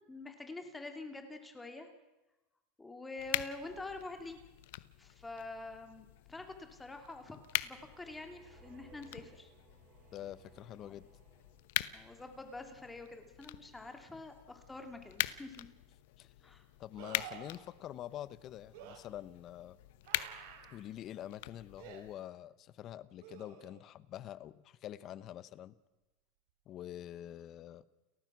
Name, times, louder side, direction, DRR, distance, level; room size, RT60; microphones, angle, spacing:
voice 1, 0.1-1.9 2.8-4.4 5.0-7.4 7.6-9.5 10.8-11.0 11.9-15.7 16.4-16.6, left 2 dB, 10° left, 5 dB, 2.6 m, -46 dB
sound 1, 3.2-22.2, left 17 dB, 70° left, 1.0 m, -43 dB
sound 2, 7.3-12.0, right 7 dB, 45° right, 4.7 m, -63 dB
voice 2, 10.1-11.1 16.2-16.3 16.8-19.8 20.7-25.7 26.7-27.8, left 12 dB, 40° left, 16 dB, 1.0 m, -46 dB
sound 3, 15.4-15.5 17.0-17.6 18.7-19.0 20.1-20.8 21.8-22.0 23.2-23.9 27.0-27.1, right 9 dB, 65° right, 4.1 m, -50 dB
30.0 x 14.5 x 6.2 m, 1.1 s
supercardioid pair, 140°, 0 cm